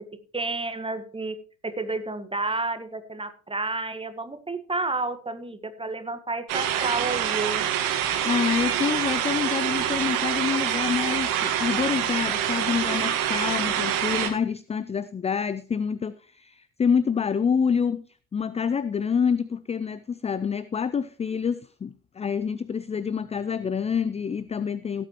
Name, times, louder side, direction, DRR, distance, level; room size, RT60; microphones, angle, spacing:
voice 1, 0.3-1.4 1.6-7.7, right 3 dB, 10° right, 1.6 m, -30 dB
sound 1, 6.5-14.3, right 10 dB, 70° right, 1.8 m, -26 dB
voice 2, 8.2-18.0 18.3-25.0, left 6 dB, 15° left, 0.4 m, -27 dB
17.0 x 8.4 x 3.1 m
hypercardioid pair, 55°, 43 cm